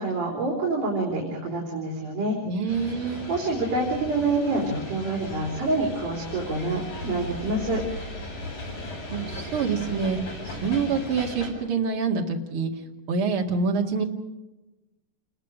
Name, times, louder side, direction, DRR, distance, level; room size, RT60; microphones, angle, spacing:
voice 1, 0.0-7.8, right 2 dB, 75° right, -3 dB, 5.4 m, -27 dB
voice 2, 2.5-3.3 9.1-10.2 10.6-12.7 13.1-14.0, right 5 dB, 45° right, 1 dB, 2.8 m, -26 dB
sound 1, 2.7-11.5, left 1 dB, 60° left, 9.2 m, -37 dB
28.5 x 22.0 x 5.1 m, 1.1 s
omnidirectional pair, 3.7 m